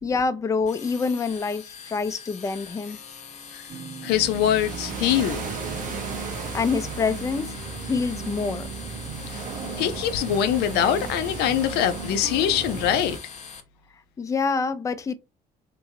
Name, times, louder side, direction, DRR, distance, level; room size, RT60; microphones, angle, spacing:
voice 1, 0.0-3.0 6.3-8.7 14.2-15.1, left 4 dB, 20° left, 0.4 m, -26 dB
sound 1, 0.7-13.6, left 6 dB, 40° left, 0.7 m, -43 dB
sound 2, 3.7-13.1, right 4 dB, 75° right, 1.3 m, -39 dB
voice 2, 4.0-5.5 9.3-9.4 9.8-13.2, left 10 dB, 80° left, 0.4 m, -23 dB
sound 3, 4.1-13.2, right 5 dB, 50° right, 0.7 m, -36 dB
3.0 x 2.5 x 2.7 m
cardioid pair, 110°, 17 cm